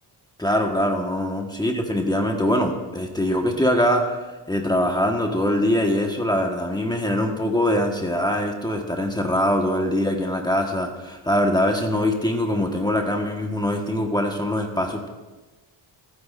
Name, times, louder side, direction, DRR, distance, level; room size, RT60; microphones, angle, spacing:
voice 1, 0.4-4.2 4.5-15.1, left 1 dB, 10° left, 2 dB, 1.3 m, -23 dB
27.5 x 9.6 x 2.5 m, 1.2 s
cardioid pair, 95°, 47 cm